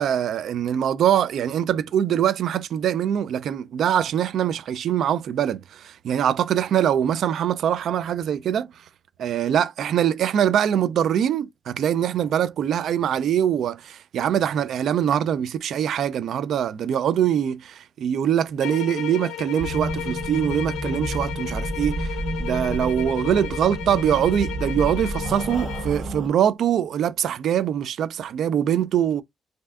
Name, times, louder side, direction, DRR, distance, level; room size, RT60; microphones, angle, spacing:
voice 1, 0.0-8.8 9.2-29.2, right 9 dB, 70° right, 0.3 m, -23 dB
sound 1, 18.6-26.0, left 11 dB, 90° left, 0.5 m, -35 dB
sound 2, 19.6-26.3, right 1 dB, 45° right, 0.7 m, -30 dB
2.6 x 2.2 x 3.3 m
cardioid pair, 90°, 0 cm